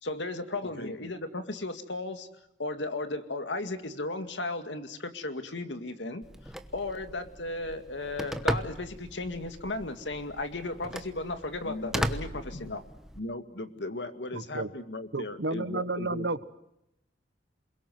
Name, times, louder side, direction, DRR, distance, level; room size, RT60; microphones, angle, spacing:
voice 1, 0.0-2.3 2.6-6.2 6.7-12.8, left 2 dB, 85° left, 8 dB, 2.2 m, -35 dB
voice 2, 0.6-1.1 11.6-12.0 12.5-12.7 13.2-16.3, left 2 dB, 70° left, 9 dB, 1.9 m, -38 dB
Telephone, 6.2-13.2, equal, 5° right, 1.1 m, -37 dB
voice 3, 14.3-14.7 15.1-16.4, right 2 dB, 70° right, 14 dB, 1.2 m, -32 dB
28.5 x 22.0 x 7.8 m, 0.81 s
head